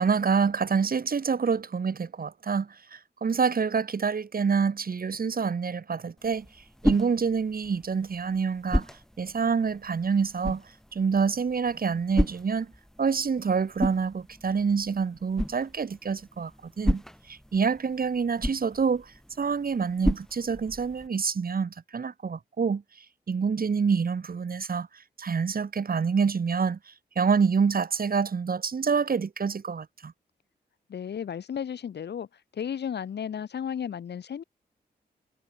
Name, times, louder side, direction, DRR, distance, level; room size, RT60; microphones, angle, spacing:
voice 1, 0.0-6.5 6.8-8.8 9.2-10.6 10.9-12.7 13.0-17.0 17.3-19.1 19.4-22.8 23.3-24.9 25.2-30.1, right 5 dB, 55° right, 3.0 m, -27 dB
sound 1, 6.2-21.1, equal, 5° left, 1.3 m, -34 dB
voice 2, 30.9-32.3 32.5-34.4, left 8 dB, 80° left, 2.9 m, -33 dB
cardioid pair, 50°, 17 cm